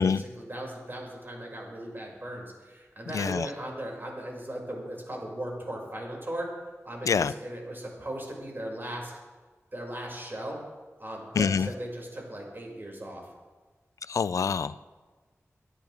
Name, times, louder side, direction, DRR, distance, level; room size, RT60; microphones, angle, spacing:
voice 1, 0.0-6.5 6.8-9.1 9.7-10.6 11.0-13.3, right 1 dB, 40° right, -2 dB, 5.9 m, -38 dB
voice 2, 3.1-3.5 7.1-7.3 11.4-11.7 14.1-14.8, left 6 dB, 90° left, 16 dB, 0.4 m, -25 dB
23.0 x 12.5 x 3.5 m, 1.3 s
cardioid pair, 50°, 5 cm